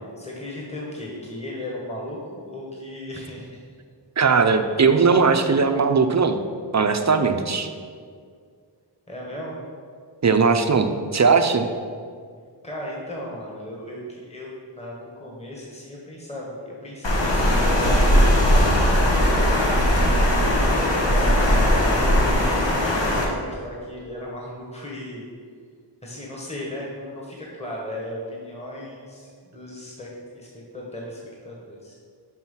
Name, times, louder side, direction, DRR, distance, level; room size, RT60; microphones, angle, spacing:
voice 1, 0.0-3.6 9.1-9.6 12.6-17.6 17.9-20.7 21.4-25.3 26.0-32.0, left 1 dB, 15° left, -3 dB, 1.5 m, -37 dB
voice 2, 4.2-6.4 6.7-7.7 10.2-11.6, right 5 dB, 40° right, 7 dB, 0.6 m, -19 dB
Water, 17.0-23.2, equal, 70° left, 1.4 m, -19 dB
6.1 x 5.6 x 5.6 m, 2.1 s
wide cardioid pair, 65°, 45 cm